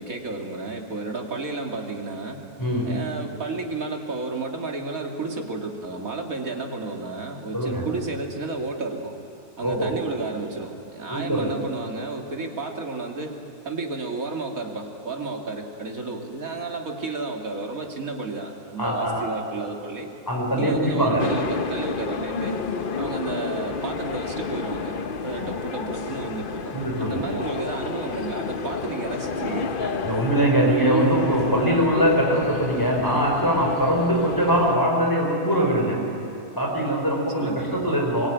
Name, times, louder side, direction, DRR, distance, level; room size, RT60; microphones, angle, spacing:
voice 1, 0.0-2.5 2.8-9.1 9.6-13.4 13.6-20.1 20.6-22.7 23.0-25.0 25.2-30.0 37.4-37.7, right 3 dB, 60° right, 2 dB, 2.8 m, -32 dB
voice 2, 2.6-3.0 7.5-7.9 9.6-9.9 11.1-11.5 18.8-19.4 20.3-21.3 26.7-27.3 30.0-36.1 36.6-38.3, right 1 dB, 15° left, 0 dB, 5.1 m, -22 dB
sound 1, 21.2-34.8, left 4 dB, 40° left, 0.9 m, -30 dB
24.0 x 23.0 x 9.4 m, 2.7 s
omnidirectional pair, 1.6 m